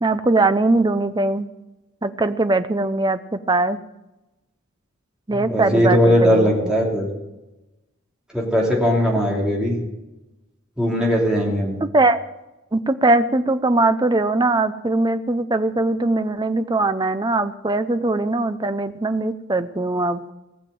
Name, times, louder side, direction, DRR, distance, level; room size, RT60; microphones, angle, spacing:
voice 1, 0.0-1.5 2.0-3.8 5.3-6.7 11.8-12.2 12.7-20.3, right 2 dB, 20° right, 10 dB, 0.6 m, -21 dB
voice 2, 5.3-7.1 8.3-9.8 10.8-11.8, equal, 5° right, -3 dB, 3.0 m, -19 dB
18.5 x 7.2 x 7.7 m, 1.0 s
head